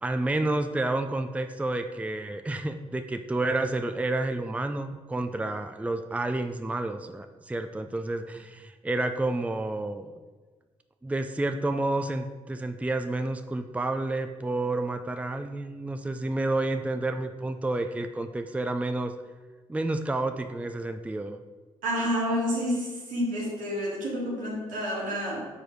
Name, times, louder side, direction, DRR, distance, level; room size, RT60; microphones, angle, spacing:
voice 1, 0.0-10.1 11.0-19.1 19.7-21.4, right 2 dB, 10° right, 7 dB, 0.4 m, -30 dB
voice 2, 21.8-25.4, equal, 85° right, -4 dB, 1.8 m, -29 dB
4.8 x 4.6 x 5.2 m, 1.3 s
supercardioid pair, 50°, 13 cm